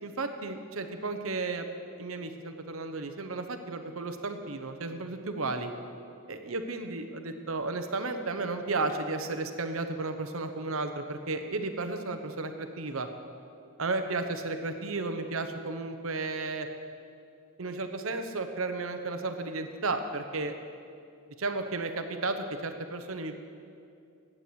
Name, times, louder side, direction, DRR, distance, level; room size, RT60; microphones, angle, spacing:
voice 1, 0.0-1.7 2.0-5.7 6.3-13.1 13.8-16.7 17.6-20.5 21.4-23.3, right 3 dB, 75° right, 7 dB, 1.0 m, -33 dB
11.5 x 8.6 x 8.0 m, 2.5 s
head